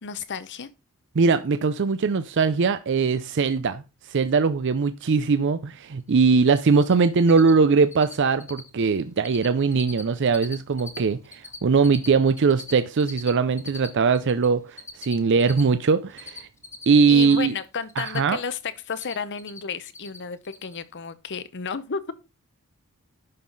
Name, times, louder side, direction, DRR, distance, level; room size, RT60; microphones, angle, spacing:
voice 1, 0.0-0.7 17.1-18.6 18.9-22.0, left 6 dB, 55° left, 0.8 m, -32 dB
voice 2, 1.2-16.5 16.9-17.5 18.0-18.4, right 5 dB, 55° right, 0.5 m, -21 dB
Cricket, 6.1-6.2 6.5-6.9 7.2-7.5 7.8-8.1 8.4-8.7 9.0-9.5 9.7-11.0 11.2-14.5 14.8-17.3 17.6-18.5 18.7-19.6 19.9-20.2 20.4-20.7, left 4 dB, 15° left, 1.1 m, -40 dB
11.0 x 5.6 x 3.9 m
head